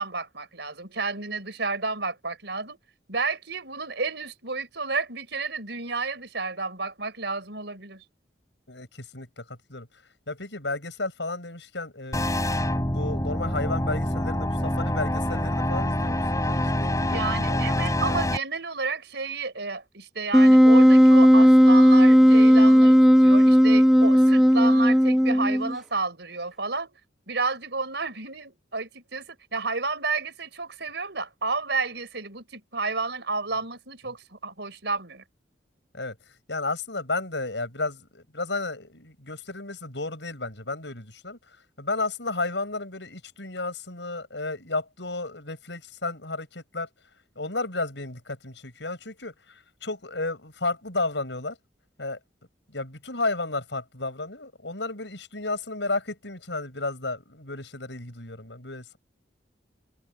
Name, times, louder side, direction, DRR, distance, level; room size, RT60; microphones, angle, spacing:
voice 1, 0.0-2.8 3.1-8.0 17.1-26.9 27.3-35.2, right 4 dB, 70° right, 5.6 m, -31 dB
voice 2, 8.7-9.9 10.3-12.2 12.9-18.2 35.9-46.9 47.4-51.6 52.0-52.2 52.7-59.0, left 3 dB, 75° left, 7.9 m, -33 dB
sound 1, 12.1-18.4, left 1 dB, 20° left, 7.1 m, -26 dB
Wind instrument woodwind instrument, 20.3-25.7, equal, ahead, 1.3 m, -15 dB
head